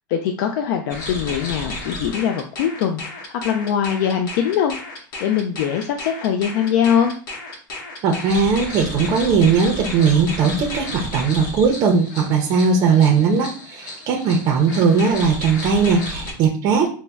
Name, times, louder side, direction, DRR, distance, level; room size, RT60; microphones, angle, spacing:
voice 1, 0.1-4.7 5.2-7.1, left 8 dB, 65° left, 5 dB, 0.3 m, -22 dB
sound 1, 0.9-16.3, left 2 dB, 85° left, 1.0 m, -33 dB
voice 2, 8.0-16.9, right 5 dB, 35° right, 1 dB, 0.5 m, -18 dB
5.1 x 2.1 x 2.3 m, 0.42 s
supercardioid pair, 165°, 11 cm